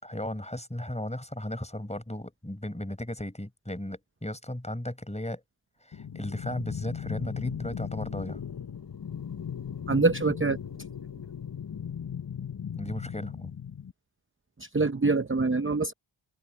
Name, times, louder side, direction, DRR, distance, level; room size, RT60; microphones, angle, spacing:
voice 1, 0.0-5.4 5.8-8.4 12.8-13.5, left 1 dB, 15° left, 4.8 m, -35 dB
sound 1, 5.9-13.9, left 8 dB, 50° left, 0.9 m, -37 dB
voice 2, 9.9-10.6 14.7-15.9, right 3 dB, 25° right, 0.8 m, -24 dB
wide cardioid pair, 45°, 48 cm